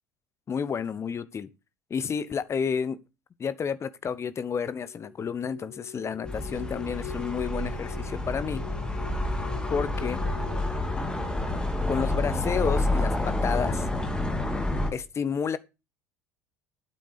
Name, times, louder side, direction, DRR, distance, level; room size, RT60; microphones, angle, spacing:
voice 1, 0.5-1.5 1.9-3.0 3.4-8.6 9.7-10.2 11.9-13.9 14.9-15.6, left 6 dB, 30° left, 1.1 m, -30 dB
sound 1, 4.6-12.4, left 9 dB, 45° left, 5.3 m, -44 dB
sound 2, 6.2-14.9, left 2 dB, 10° left, 3.0 m, -29 dB
12.0 x 9.2 x 5.0 m
figure-of-eight pair, 65°, 9 cm